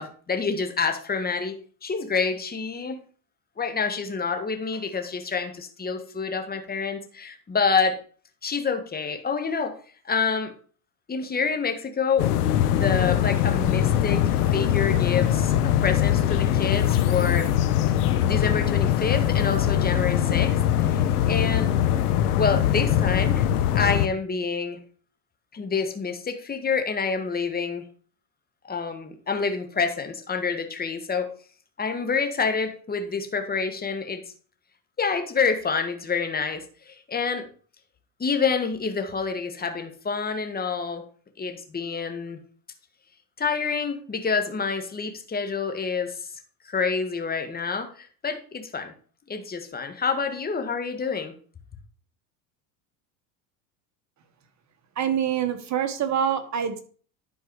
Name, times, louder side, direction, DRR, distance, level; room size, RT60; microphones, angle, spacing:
voice 1, 0.0-3.0 3.6-8.0 8.4-9.8 10.1-10.5 11.1-12.4 12.7-17.5 18.2-20.6 20.8-21.7 22.4-23.5 23.7-24.8 25.5-27.8 28.6-31.3 31.8-34.2 35.0-37.5 38.2-41.0 41.4-42.4 43.4-46.3 46.7-48.9 49.3-51.3, left 5 dB, 20° left, 6 dB, 1.8 m, -27 dB
sound 1, 12.2-24.1, left 11 dB, 85° left, 1.0 m, -22 dB
voice 2, 55.0-56.8, right 8 dB, 40° right, 9 dB, 1.5 m, -25 dB
11.0 x 4.5 x 4.8 m, 0.43 s
supercardioid pair, 95°, 44 cm